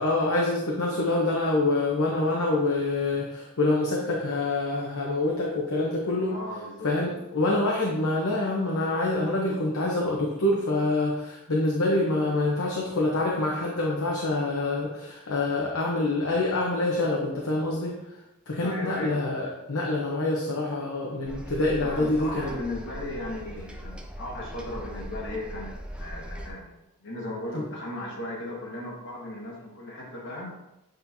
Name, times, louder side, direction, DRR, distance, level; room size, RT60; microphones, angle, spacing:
voice 1, 0.0-6.3 6.8-18.2 18.5-22.5 27.5-27.6, left 2 dB, 80° left, -3 dB, 0.9 m, -26 dB
voice 2, 6.2-6.9 12.4-12.8 18.6-19.2 21.8-26.7 27.0-30.5, left 1 dB, 55° left, -3 dB, 1.5 m, -36 dB
sound 1, 21.3-26.5, equal, 5° right, 0.4 m, -40 dB
8.1 x 4.3 x 2.7 m, 0.95 s
head